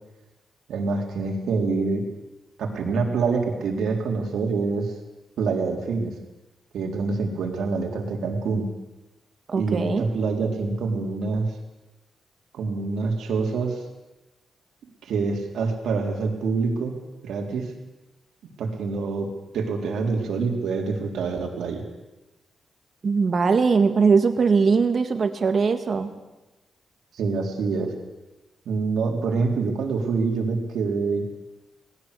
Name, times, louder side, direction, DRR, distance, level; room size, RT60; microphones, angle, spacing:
voice 1, 0.7-2.1 2.6-4.9 5.4-6.1 6.7-8.7 9.5-11.6 12.5-13.8 15.0-17.7 18.6-19.3 19.5-21.9 27.1-27.9 28.7-31.2, right 4 dB, 90° right, 1 dB, 3.7 m, -26 dB
voice 2, 9.5-10.0 23.0-26.1, right 5 dB, 40° right, 8 dB, 1.7 m, -20 dB
19.5 x 17.0 x 8.4 m, 1.1 s
wide cardioid pair, 155°, 0 cm